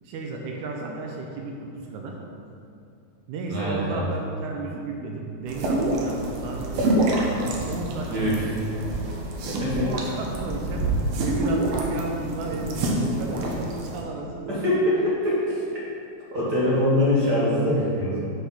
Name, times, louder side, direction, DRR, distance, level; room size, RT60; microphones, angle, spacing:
voice 1, 0.0-2.2 3.3-6.8 7.5-9.1 9.8-10.9 11.2-14.8, right 3 dB, 90° right, 0 dB, 2.1 m, -33 dB
voice 2, 3.5-4.1 8.1-8.4 9.6-9.9 14.5-15.4 16.3-18.2, left 1 dB, 50° right, -8 dB, 1.3 m, -23 dB
sound 1, 5.5-14.0, right 1 dB, 70° right, 1.7 m, -27 dB
5.7 x 4.9 x 5.7 m, 2.5 s
omnidirectional pair, 3.4 m